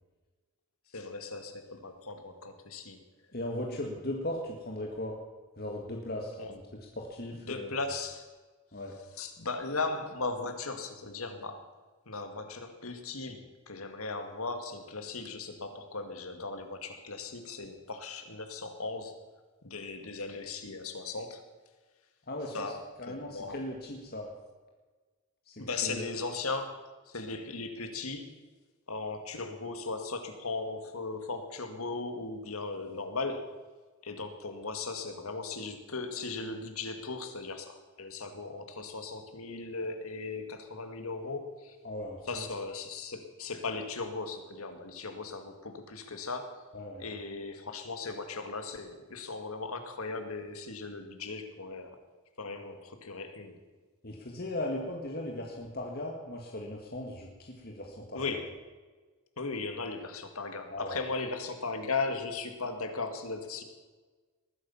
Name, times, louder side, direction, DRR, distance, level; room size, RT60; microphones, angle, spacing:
voice 1, 0.9-3.0 6.4-6.6 7.5-8.2 9.2-11.6 12.1-19.2 19.6-21.4 22.5-22.8 23.1-23.6 25.6-26.7 27.1-28.3 28.9-33.4 34.0-41.8 42.3-46.6 47.0-52.0 52.4-53.6 58.1-58.5 59.4-63.6, left 3 dB, 80° left, 6 dB, 2.1 m, -37 dB
voice 2, 3.3-5.2 5.6-6.6 7.0-7.7 8.7-8.9 22.3-22.7 23.0-24.3 25.5-26.1 41.8-42.5 46.7-47.1 54.0-58.4 60.7-61.0, left 1 dB, 45° left, 0 dB, 1.9 m, -38 dB
20.0 x 9.8 x 7.2 m, 1.3 s
head